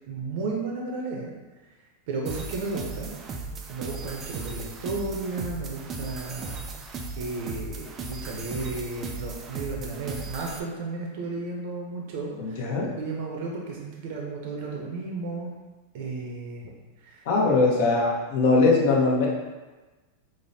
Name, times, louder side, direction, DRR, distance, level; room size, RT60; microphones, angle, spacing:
voice 1, 0.1-1.3 2.1-3.1 3.7-6.6 6.9-12.6 13.0-15.5 15.9-16.7 17.0-17.2 17.5-17.6, right 3 dB, 60° right, -1 dB, 0.6 m, -33 dB
sound 1, 2.2-10.6, right 3 dB, 25° right, 0.3 m, -37 dB
voice 2, 12.4-12.9 17.3-19.3, left 3 dB, 60° left, -3 dB, 0.8 m, -21 dB
5.1 x 2.1 x 2.7 m, 1.2 s
supercardioid pair, 155°, 0 cm